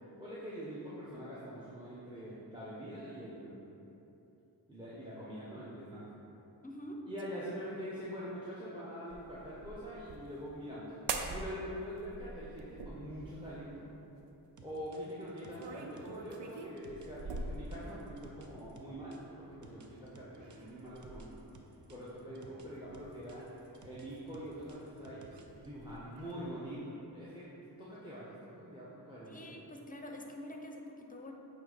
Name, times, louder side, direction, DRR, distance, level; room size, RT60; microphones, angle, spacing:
voice 1, 0.2-3.6 4.7-6.0 7.1-10.9 11.3-13.9 14.6-21.5 21.9-23.5 23.8-25.2 25.5-27.5 27.8-29.6, equal, 10° right, -8 dB, 1.1 m, -44 dB
voice 2, 6.6-7.0 29.3-31.3, left 1 dB, 20° left, 2 dB, 0.7 m, -46 dB
sound 1, 9.1-10.4 11.1-11.6 11.9-13.7 15.4-18.3 19.5-20.0 20.4-21.6 22.7-24.7 25.0-26.5, right 3 dB, 85° right, 0.6 m, -44 dB
sound 2, 14.6-19.2 19.6-22.7 22.9-25.7, right 4 dB, 45° right, 0.7 m, -57 dB
8.7 x 2.9 x 4.1 m, 3.0 s
cardioid pair, 55°, 42 cm